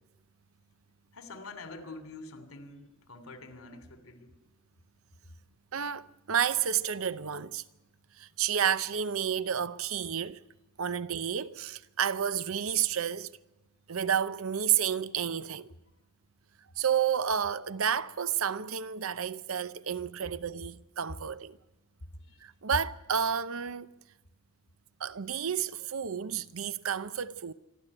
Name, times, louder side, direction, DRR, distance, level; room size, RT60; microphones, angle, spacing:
voice 1, 1.1-4.3 22.3-22.4, left 3 dB, 85° left, 3.0 m, -46 dB
voice 2, 5.7-7.6 8.2-10.4 10.8-13.3 13.9-15.7 16.8-21.6 22.4-23.9 25.0-27.5, right 8 dB, 80° right, 0.7 m, -30 dB
26.5 x 13.0 x 9.9 m
head